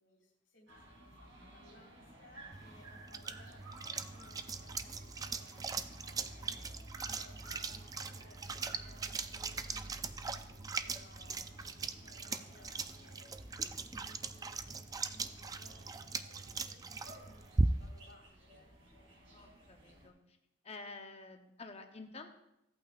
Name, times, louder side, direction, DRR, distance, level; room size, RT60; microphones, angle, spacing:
voice 1, 0.0-15.8 16.3-19.1, left 1 dB, 70° left, -2 dB, 2.9 m, -63 dB
sound 1, 0.7-20.1, right 1 dB, 75° right, 3.1 m, -55 dB
sound 2, 2.5-18.1, right 3 dB, 20° right, 0.3 m, -39 dB
voice 2, 19.3-20.4 20.6-22.3, left 3 dB, 35° left, 5 dB, 0.9 m, -50 dB
15.5 x 8.7 x 2.5 m, 0.85 s
head